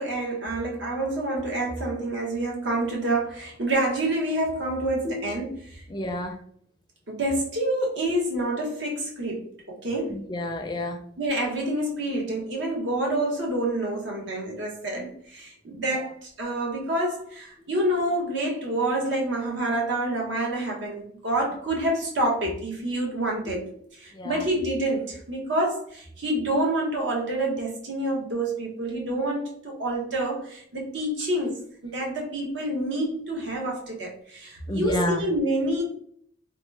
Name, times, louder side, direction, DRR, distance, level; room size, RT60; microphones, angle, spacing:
voice 1, 0.0-5.8 7.1-10.2 11.2-35.8, right 1 dB, 70° right, -2 dB, 1.0 m, -28 dB
voice 2, 5.9-6.3 10.1-11.0 24.1-24.4 34.7-35.2, left 1 dB, 25° left, 4 dB, 0.4 m, -29 dB
3.0 x 2.1 x 3.1 m, 0.62 s
head